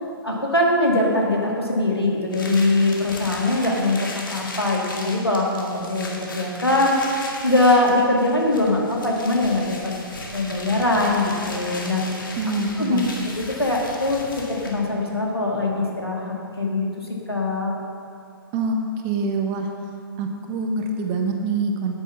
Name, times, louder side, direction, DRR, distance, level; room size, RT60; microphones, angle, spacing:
voice 1, 0.0-7.0 7.4-9.9 10.3-12.0 12.8-13.0 13.4-16.9 17.3-17.7, left 2 dB, 90° left, -2 dB, 2.2 m, -22 dB
sound 1, 2.3-14.9, left 2 dB, 60° left, 1.9 m, -36 dB
voice 2, 12.4-13.1 18.5-18.8 19.0-19.7 20.2-21.9, right 3 dB, 25° right, 4 dB, 1.0 m, -25 dB
9.2 x 9.1 x 5.7 m, 2.6 s
figure-of-eight pair, 125°, 13 cm